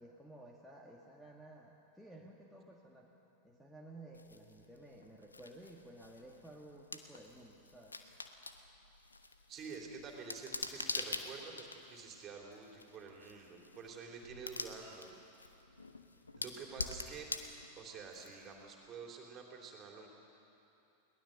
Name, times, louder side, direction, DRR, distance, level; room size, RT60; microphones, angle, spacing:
voice 1, 0.0-3.1 3.4-8.0, right 1 dB, ahead, -1 dB, 1.7 m, -54 dB
sound 1, 4.1-18.7, left 3 dB, 80° left, 1.1 m, -46 dB
voice 2, 9.5-15.2 16.3-17.3 17.8-20.1, right 5 dB, 30° right, 1 dB, 3.5 m, -49 dB
22.0 x 19.0 x 6.7 m, 2.8 s
figure-of-eight pair, 90°, 0 cm